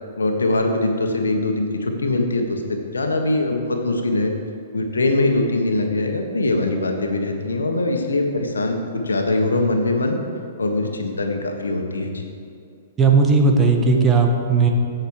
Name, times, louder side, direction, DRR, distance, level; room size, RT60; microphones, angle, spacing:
voice 1, 0.2-2.6 2.9-4.3 4.7-10.2 10.6-12.2, left 2 dB, 85° left, 4 dB, 1.5 m, -22 dB
voice 2, 13.0-14.7, right 4 dB, 20° right, 2 dB, 1.6 m, -16 dB
16.0 x 6.5 x 4.9 m, 2.5 s
hypercardioid pair, 120°, 0 cm